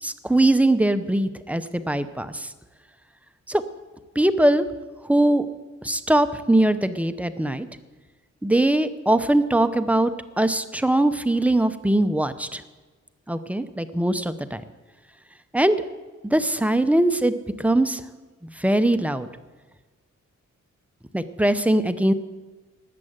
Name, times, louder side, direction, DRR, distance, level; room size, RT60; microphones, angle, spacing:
voice 1, 0.0-2.5 3.5-3.6 4.2-4.6 5.0-5.4 5.8-7.7 8.4-10.1 10.4-12.6 13.3-14.6 15.5-15.8 16.2-18.0 18.4-19.3 21.1-22.1, right 1 dB, 5° right, 11 dB, 0.7 m, -21 dB
19.0 x 7.6 x 8.0 m, 1.3 s
wide cardioid pair, 150°, 30 cm